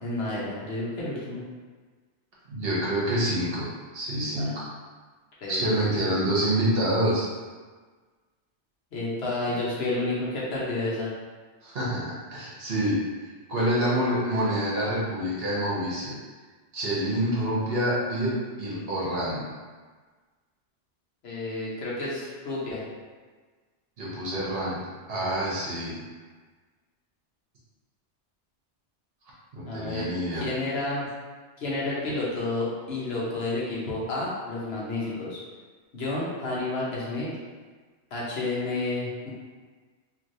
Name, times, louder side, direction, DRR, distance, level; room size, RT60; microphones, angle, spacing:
voice 1, 0.0-1.4 4.4-4.5 5.4-5.9 8.9-11.1 21.2-22.8 29.7-30.1 30.3-31.1 31.6-35.4 35.9-37.3 38.1-39.3, left 2 dB, 65° left, -6 dB, 1.1 m, -30 dB
voice 2, 2.5-3.7 3.9-4.7 5.5-7.3 11.6-13.0 13.5-16.1 16.7-19.4 24.0-24.7 25.1-26.0 29.5-30.5, right 1 dB, 60° right, -7 dB, 1.1 m, -27 dB
3.1 x 2.9 x 2.6 m, 1.4 s
omnidirectional pair, 1.2 m